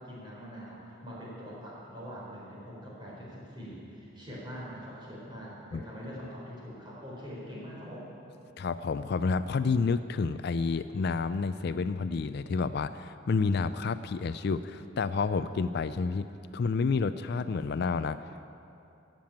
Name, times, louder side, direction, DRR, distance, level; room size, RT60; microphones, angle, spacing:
voice 1, 0.0-8.1, equal, 25° right, -5 dB, 4.4 m, -43 dB
voice 2, 8.6-16.3 16.5-18.3, left 4 dB, 55° left, 12 dB, 0.4 m, -29 dB
16.0 x 7.6 x 8.6 m, 2.6 s
head